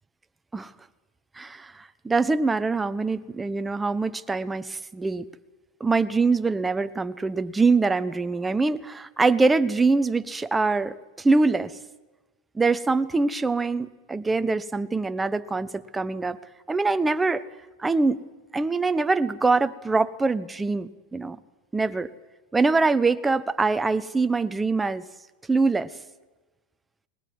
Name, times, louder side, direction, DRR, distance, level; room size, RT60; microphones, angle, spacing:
voice 1, 1.4-5.3 5.8-11.8 12.5-16.4 16.7-17.4 17.8-18.2 18.5-21.4 21.7-22.1 22.5-25.1 25.5-25.9, right 3 dB, 10° right, 12 dB, 1.0 m, -24 dB
21.0 x 20.0 x 9.5 m, 1.2 s
hypercardioid pair, 120°, 0 cm